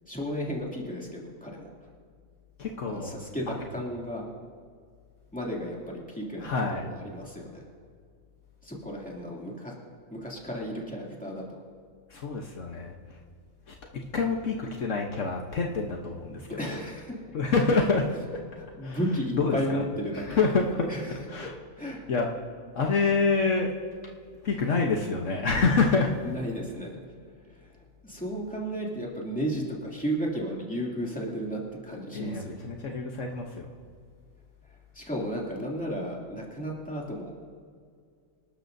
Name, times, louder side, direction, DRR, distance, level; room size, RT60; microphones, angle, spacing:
voice 1, 0.1-1.7 2.9-4.3 5.3-6.5 6.8-7.6 8.6-9.7 10.1-11.4 16.6-17.1 17.7-17.8 18.8-20.4 20.9-21.2 21.8-22.0 26.2-27.0 27.5-32.6 34.9-37.3, equal, 5° left, -4 dB, 2.6 m, -33 dB
voice 2, 2.6-3.1 3.5-3.6 6.4-6.8 12.1-12.9 13.7-13.8 14.1-16.7 17.3-18.1 18.8-19.0 19.3-19.8 20.1-20.9 21.3-21.5 22.1-22.3 22.7-23.7 24.4-26.1 32.1-33.6, left 4 dB, 65° left, 1 dB, 1.3 m, -27 dB
26.0 x 12.5 x 2.7 m, 2.1 s
omnidirectional pair, 1.4 m